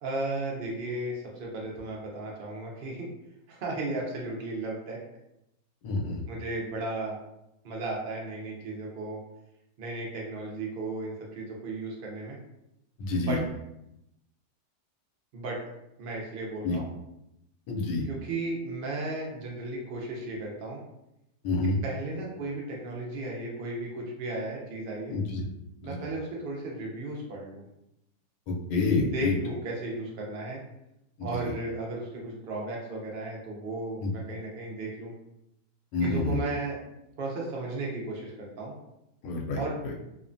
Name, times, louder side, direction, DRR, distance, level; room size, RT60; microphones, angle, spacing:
voice 1, 0.0-3.1 3.5-5.0 6.3-7.2 7.6-9.2 9.8-12.4 13.1-13.4 15.3-15.6 16.0-16.9 18.0-20.8 21.8-25.1 25.8-27.6 29.1-30.6 31.2-35.1 36.0-36.8 37.2-38.7 39.6-39.8, right 2 dB, 80° right, -3 dB, 0.5 m, -35 dB
voice 2, 5.8-6.2 13.0-13.4 16.6-16.8 17.7-18.0 21.4-21.8 25.1-25.4 25.8-26.0 28.5-29.3 34.0-34.1 35.9-36.4 39.2-39.6, left 3 dB, 90° left, -1 dB, 1.2 m, -27 dB
2.7 x 2.2 x 2.5 m, 0.86 s
omnidirectional pair, 1.7 m